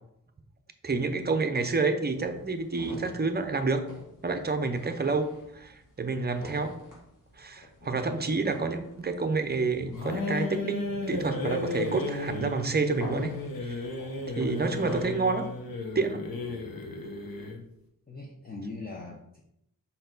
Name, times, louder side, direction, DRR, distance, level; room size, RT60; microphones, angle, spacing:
voice 1, 0.8-3.9 4.2-5.3 5.5-6.7 7.4-13.4 13.7-13.8 14.4-15.5 15.9-16.3, right 4 dB, 30° right, 8 dB, 0.6 m, -29 dB
sound 1, 2.1-15.6, equal, 65° left, 2.1 m, -47 dB
sound 2, 10.0-17.6, left 2 dB, 80° left, 1.0 m, -34 dB
voice 2, 16.4-16.8 18.1-19.4, left 3 dB, 25° left, -1 dB, 0.7 m, -42 dB
5.5 x 4.5 x 3.9 m, 0.79 s
wide cardioid pair, 120°, 35 cm